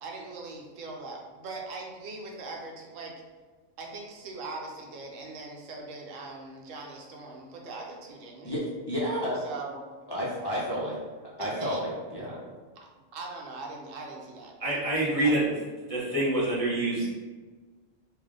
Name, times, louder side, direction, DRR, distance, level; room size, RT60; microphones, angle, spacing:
voice 1, 0.0-3.1 3.8-8.5 9.4-9.8 11.4-11.8 12.8-12.9 13.1-15.3, right 3 dB, 90° right, 0 dB, 1.1 m, -41 dB
voice 2, 8.4-9.4 10.1-10.9 11.4-12.4, equal, 30° left, -7 dB, 0.5 m, -31 dB
voice 3, 14.6-15.4 15.9-17.1, right 1 dB, 30° right, -7 dB, 1.1 m, -26 dB
3.4 x 2.5 x 3.7 m, 1.3 s
omnidirectional pair, 1.3 m